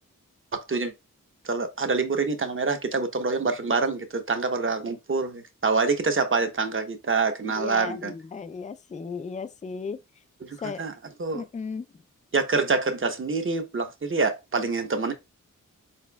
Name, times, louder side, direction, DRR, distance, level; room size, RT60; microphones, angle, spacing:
voice 1, 0.5-0.9 1.4-8.1 10.4-10.9 11.2-11.4 12.3-15.1, right 4 dB, 40° right, 0.9 m, -26 dB
voice 2, 7.6-10.0 10.6-10.8 11.3-11.9, left 5 dB, 25° left, 0.4 m, -35 dB
4.3 x 4.2 x 2.2 m
wide cardioid pair, 80°, 32 cm